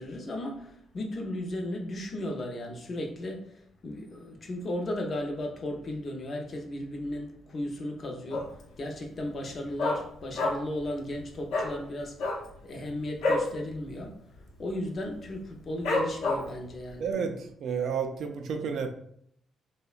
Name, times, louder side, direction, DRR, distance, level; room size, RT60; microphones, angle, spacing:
voice 1, 0.0-17.1, left 1 dB, 45° left, 0.6 m, -36 dB
Dog, 8.3-8.7 9.0-9.1 9.4-10.8 11.1-11.2 11.5-11.7 12.1-13.5 13.9-14.0 14.3-14.7 15.2-15.3 15.8-16.6 17.1-17.2, left 2 dB, 85° left, 0.6 m, -28 dB
voice 2, 17.0-18.9, right 6 dB, 70° right, 0.3 m, -31 dB
2.7 x 2.1 x 2.4 m
cardioid pair, 90°, 0 cm